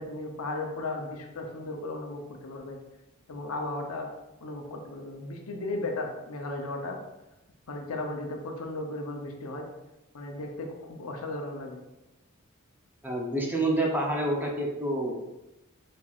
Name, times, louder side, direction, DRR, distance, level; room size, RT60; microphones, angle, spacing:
voice 1, 0.0-2.8 3.3-4.1 4.4-7.0 7.7-9.7 10.1-11.8, left 2 dB, 80° left, 2 dB, 0.7 m, -35 dB
voice 2, 13.0-15.1, right 1 dB, 10° right, -2 dB, 0.7 m, -28 dB
4.4 x 4.2 x 2.4 m, 0.95 s
head